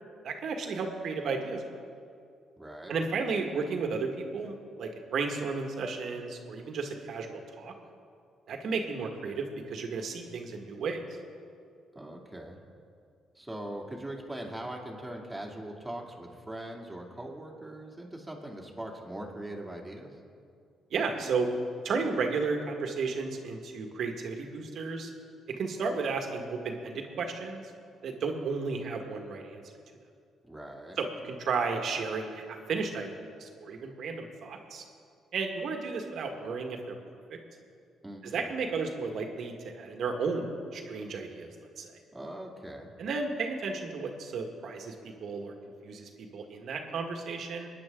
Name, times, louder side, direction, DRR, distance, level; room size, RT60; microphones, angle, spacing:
voice 1, 0.2-1.6 2.9-7.7 8.5-11.0 20.9-21.5 21.8-25.1 25.5-27.6 28.0-29.6 31.0-34.8 35.3-36.9 37.3-37.4 38.2-41.5 41.8-41.9 43.0-45.5 45.8-47.7, right 4 dB, 65° right, 3 dB, 1.7 m, -33 dB
voice 2, 2.6-2.9 11.9-12.6 13.3-20.1 30.4-31.0 38.0-38.4 42.1-42.9, right 1 dB, 10° right, -1 dB, 2.6 m, -41 dB
23.0 x 9.9 x 3.8 m, 2.3 s
supercardioid pair, 75°, 0 cm